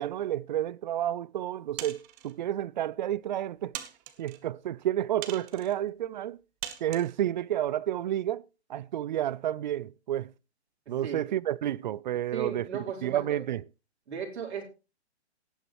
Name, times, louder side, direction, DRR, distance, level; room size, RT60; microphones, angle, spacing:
voice 1, 0.0-3.7 4.2-6.4 6.8-8.4 8.7-10.3 10.9-12.7 13.0-13.6, right 12 dB, 45° right, 0.4 m, -30 dB
sound 1, 1.8-2.3 3.0-3.1 3.7-4.4 5.2-5.7 6.6-7.1, right 13 dB, 20° right, 0.9 m, -40 dB
voice 2, 10.9-11.2 12.3-13.4 14.1-14.6, right 7 dB, 70° right, 4.4 m, -35 dB
17.5 x 7.9 x 3.1 m
hypercardioid pair, 140°, 33 cm